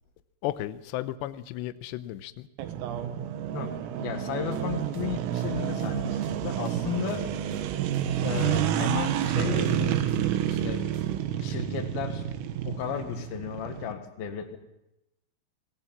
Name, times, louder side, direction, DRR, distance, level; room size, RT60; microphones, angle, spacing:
voice 1, 0.4-2.5, left 14 dB, 80° left, 12 dB, 2.6 m, -34 dB
sound 1, 2.6-13.9, right 10 dB, 80° right, 3.9 m, -29 dB
voice 2, 3.5-7.3 8.2-10.0 10.5-10.9 11.4-12.3 12.7-14.6, left 9 dB, 60° left, 6 dB, 2.9 m, -34 dB
sound 2, 4.5-11.2, right 7 dB, 60° right, 2.5 m, -43 dB
19.0 x 19.0 x 7.4 m, 0.91 s
omnidirectional pair, 5.9 m